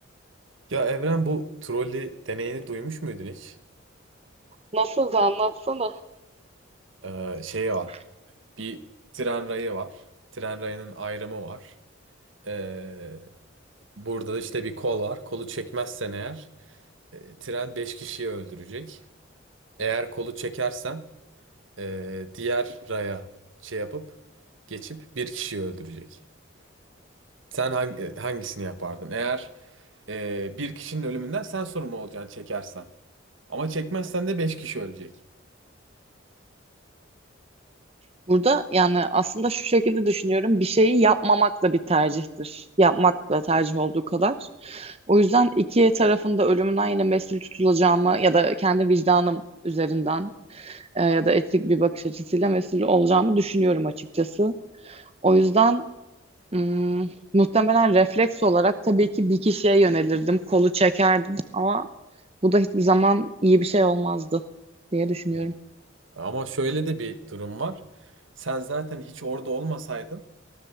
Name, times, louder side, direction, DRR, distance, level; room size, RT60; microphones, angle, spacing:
voice 1, 0.7-3.5 7.0-7.9 8.6-8.8 9.1-9.9 10.3-11.7 12.4-13.3 14.0-16.5 17.1-19.0 19.8-21.0 21.8-23.2 23.6-24.1 24.7-26.2 27.5-29.5 30.1-32.8 33.5-35.1 66.1-67.8 68.4-70.2, right 3 dB, 75° right, 10 dB, 1.4 m, -31 dB
voice 2, 4.7-5.9 38.3-54.5 54.8-55.8 56.5-61.9 62.4-64.4 64.9-65.5, right 2 dB, 30° right, 11 dB, 0.8 m, -21 dB
23.5 x 17.0 x 7.3 m, 0.95 s
head